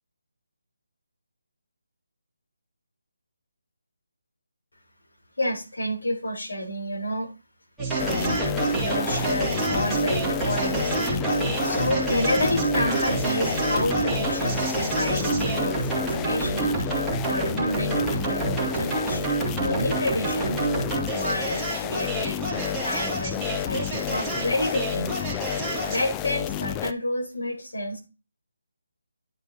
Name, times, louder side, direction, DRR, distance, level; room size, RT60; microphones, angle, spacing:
voice 1, 5.4-7.3 7.9-8.4 8.7-15.8 16.2-20.6 21.1-25.3 25.9-28.0, left 1 dB, 80° left, -2 dB, 3.7 m, -30 dB
sound 1, 7.8-26.1, right 3 dB, 5° right, 2.0 m, -27 dB
sound 2, 8.0-26.9, left 11 dB, 15° left, 0.3 m, -31 dB
10.5 x 5.2 x 2.7 m, 0.30 s
figure-of-eight pair, 155°, 0 cm